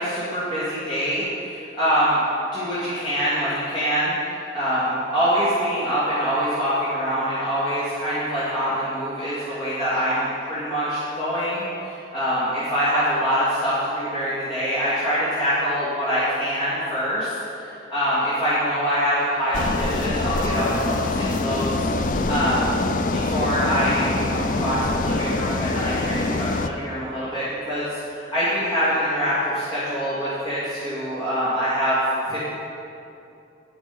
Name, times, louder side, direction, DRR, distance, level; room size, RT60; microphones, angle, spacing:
voice 1, 0.0-2.2 2.5-20.9 21.2-22.7 23.1-32.0 32.3-32.4, equal, 25° left, -12 dB, 2.5 m, -24 dB
sound 1, 19.5-26.7, left 2 dB, 45° left, 0.5 m, -24 dB
16.5 x 5.9 x 5.5 m, 2.7 s
head